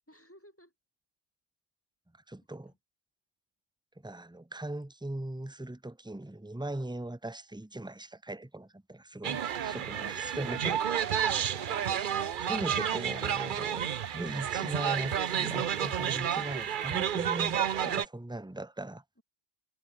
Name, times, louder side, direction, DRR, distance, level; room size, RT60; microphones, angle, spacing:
voice 1, 0.1-0.7 2.7-2.8 11.2-12.0 19.2-19.3, equal, 10° left, 5.8 m, -57 dB
voice 2, 2.3-2.7 4.0-11.2 12.4-19.0, right 1 dB, 5° right, 0.8 m, -39 dB
sound 1, 9.2-18.0, right 9 dB, 55° right, 0.8 m, -31 dB
omnidirectional pair, 1.0 m